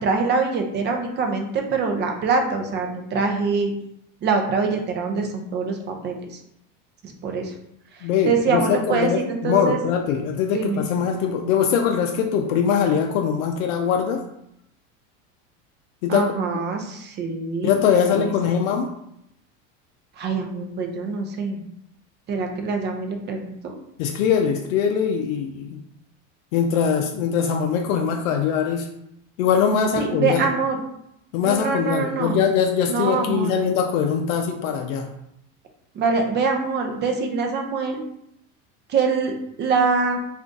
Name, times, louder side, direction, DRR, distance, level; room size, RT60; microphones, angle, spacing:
voice 1, 0.0-3.7 4.2-6.4 7.0-7.5 8.2-9.8 10.5-10.9 16.1-17.7 18.1-18.3 20.2-21.6 22.3-23.7 29.9-30.8 31.4-32.4 32.9-33.6 35.9-38.0 38.9-40.2, right 4 dB, 30° right, 4 dB, 0.4 m, -24 dB
voice 2, 8.0-14.2 16.0-16.3 17.6-18.9 24.0-25.8 26.5-28.9 29.4-30.4 31.3-35.1, left 7 dB, 85° left, 4 dB, 0.5 m, -22 dB
2.5 x 2.3 x 3.8 m, 0.78 s
supercardioid pair, 120°, 39 cm